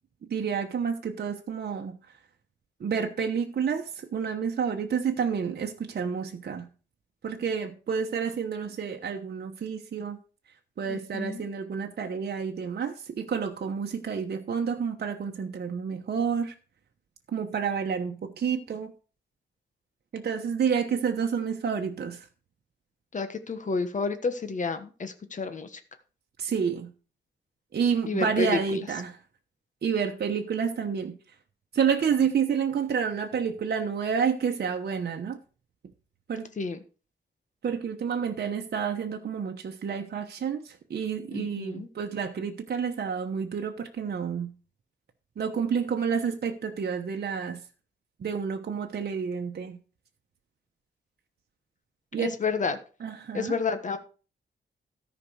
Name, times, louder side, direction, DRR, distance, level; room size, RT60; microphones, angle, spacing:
voice 1, 0.3-2.0 2.8-6.7 7.2-10.2 10.8-16.5 17.3-18.9 20.1-22.3 26.4-26.9 27.7-29.2 29.8-31.2 31.7-35.4 36.3-36.5 37.6-44.5 45.4-47.6 48.2-49.8 52.1-52.3 53.0-53.5, right 6 dB, 60° right, 1.1 m, -29 dB
voice 2, 10.9-11.5 23.1-25.8 28.1-28.8 36.6-36.8 41.3-41.9 52.2-52.8 53.3-54.0, left 4 dB, 40° left, 1.3 m, -30 dB
13.5 x 5.2 x 6.4 m
wide cardioid pair, 150°, 19 cm